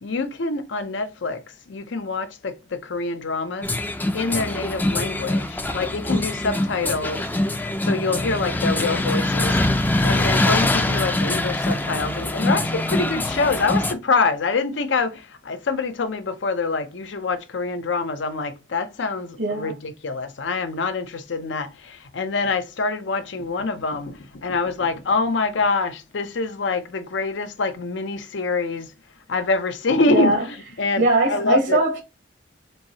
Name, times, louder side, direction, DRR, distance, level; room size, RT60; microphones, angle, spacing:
voice 1, 0.0-1.4 1.7-3.7 4.1-7.3 7.8-9.6 10.0-28.9 29.3-31.8, left 3 dB, 85° left, 0.6 m, -25 dB
sound 1, 3.6-13.9, left 1 dB, 10° left, 0.3 m, -23 dB
voice 2, 19.4-19.7 30.0-30.4 31.0-32.0, right 2 dB, 70° right, 0.9 m, -21 dB
4.4 x 2.7 x 2.8 m
head